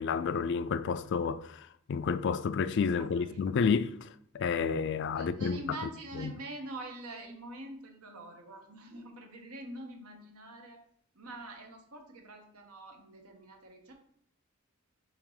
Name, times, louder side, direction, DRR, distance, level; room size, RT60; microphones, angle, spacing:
voice 1, 0.0-5.6 6.2-6.3, left 5 dB, 55° left, 0.3 m, -30 dB
voice 2, 3.0-3.4 5.1-10.8 11.1-13.9, right 2 dB, 85° right, 1.3 m, -45 dB
7.0 x 2.9 x 4.8 m
head